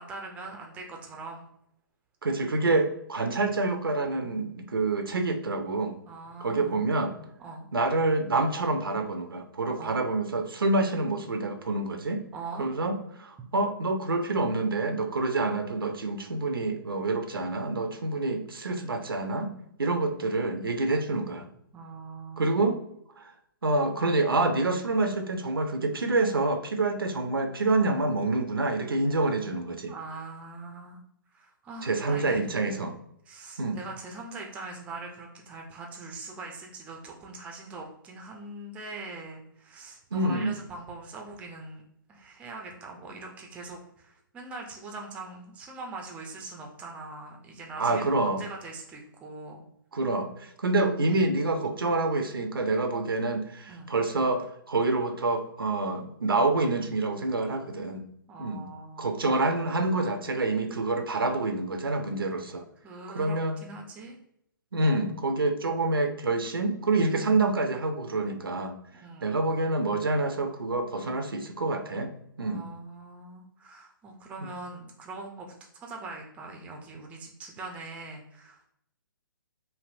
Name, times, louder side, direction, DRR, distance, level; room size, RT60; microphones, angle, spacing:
voice 1, 0.0-1.5 6.1-6.9 7.4-7.7 9.8-10.0 12.3-12.7 21.7-22.6 29.9-31.0 31.3-32.5 33.3-41.8 42.1-49.6 53.7-53.9 58.3-59.2 62.8-64.1 68.9-69.5 72.4-75.5 75.8-78.7, right 3 dB, 10° right, 1 dB, 0.4 m, -42 dB
voice 2, 2.2-6.0 6.4-7.2 7.7-12.2 12.6-19.5 19.8-21.5 22.4-22.8 23.2-23.3 23.6-29.9 31.8-32.9 33.6-33.8 40.1-40.5 47.8-48.4 49.9-58.1 58.4-58.7 59.0-62.6 63.1-63.6 64.7-68.8 69.2-72.1 72.4-72.6, right 2 dB, 80° right, 7 dB, 0.5 m, -27 dB
3.2 x 2.5 x 2.5 m, 0.73 s
figure-of-eight pair, 130°, 12 cm